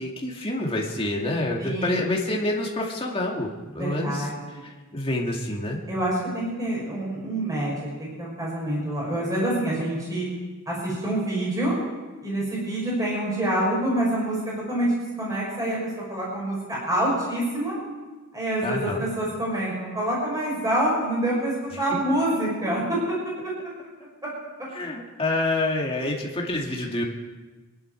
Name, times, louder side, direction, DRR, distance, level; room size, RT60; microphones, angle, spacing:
voice 1, 0.0-3.5 3.7-4.2 4.6-5.8 18.6-19.0 21.9-22.0 24.7-27.0, left 1 dB, 25° left, -1 dB, 2.3 m, -27 dB
voice 2, 1.6-2.1 3.8-4.6 5.9-10.3 10.7-11.7 12.2-14.4 14.7-15.8 16.1-17.8 18.3-23.0, right 1 dB, 15° right, -5 dB, 5.8 m, -26 dB
26.0 x 11.0 x 4.7 m, 1.3 s
head